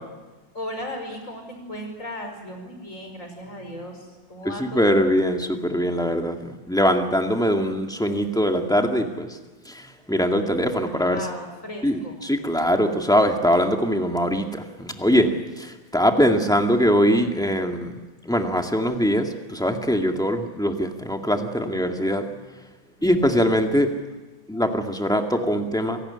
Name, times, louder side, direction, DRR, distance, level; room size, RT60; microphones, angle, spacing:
voice 1, 0.5-5.2 10.7-12.2 16.1-16.4 17.0-17.5 23.0-23.5, left 1 dB, 35° left, 4 dB, 5.8 m, -37 dB
voice 2, 4.6-9.4 9.7-11.2 11.8-17.9 18.2-22.2 23.0-23.9 24.5-26.0, equal, ahead, 4 dB, 1.9 m, -22 dB
27.0 x 18.5 x 9.9 m, 1.2 s
omnidirectional pair, 2.2 m